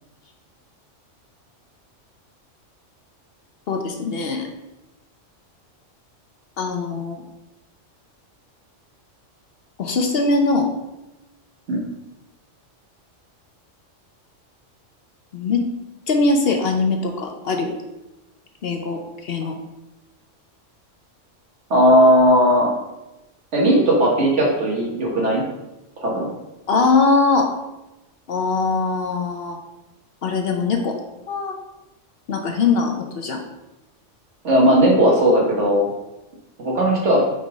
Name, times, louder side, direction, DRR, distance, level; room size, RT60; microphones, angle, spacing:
voice 1, 3.7-4.5 6.6-7.2 9.8-10.7 15.3-15.7 16.1-17.7 18.6-19.6 26.7-27.5 28.3-29.6 30.2-31.0 31.3-31.6 32.3-33.4, left 3 dB, 60° left, 4 dB, 0.8 m, -21 dB
voice 2, 21.7-22.7 23.5-25.4 26.0-26.3 34.4-35.9 36.6-37.2, equal, 70° right, -1 dB, 1.6 m, -16 dB
5.5 x 3.7 x 4.8 m, 0.98 s
omnidirectional pair, 1.3 m